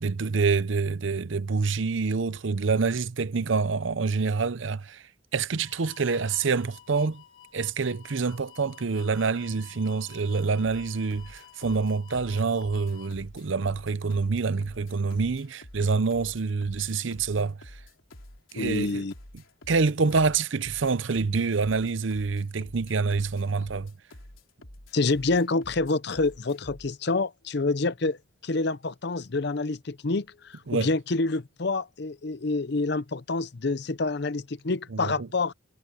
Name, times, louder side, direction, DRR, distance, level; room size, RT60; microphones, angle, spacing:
voice 1, 0.0-5.0 5.3-7.2 7.5-17.6 18.5-19.0 19.7-23.9 30.7-30.9 34.9-35.3, right 4 dB, 70° right, 0.7 m, -26 dB
sound 1, 5.5-13.1, left 12 dB, 25° left, 3.8 m, -52 dB
sound 2, 10.6-26.9, left 1 dB, 85° left, 3.8 m, -48 dB
voice 2, 18.6-19.1 24.9-28.2 28.4-35.5, left 3 dB, 55° left, 0.7 m, -27 dB
head